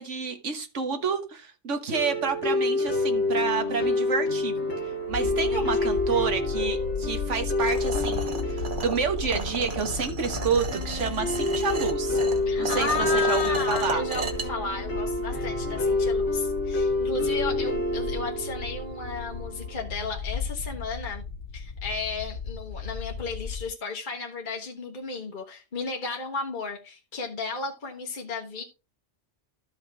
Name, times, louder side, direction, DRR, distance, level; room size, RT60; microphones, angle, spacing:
voice 1, 0.0-4.6 5.1-12.2 12.6-14.0, right 5 dB, 80° right, 1.7 m, -29 dB
sound 1, 1.9-19.9, left 2 dB, 65° left, 1.8 m, -28 dB
sound 2, 5.1-23.7, left 5 dB, 80° left, 1.4 m, -36 dB
voice 2, 5.5-5.9 12.5-21.2 21.5-28.6, left 4 dB, 45° left, 1.3 m, -33 dB
sound 3, 7.6-14.5, right 4 dB, 45° right, 1.3 m, -34 dB
13.0 x 5.7 x 3.3 m
omnidirectional pair, 1.2 m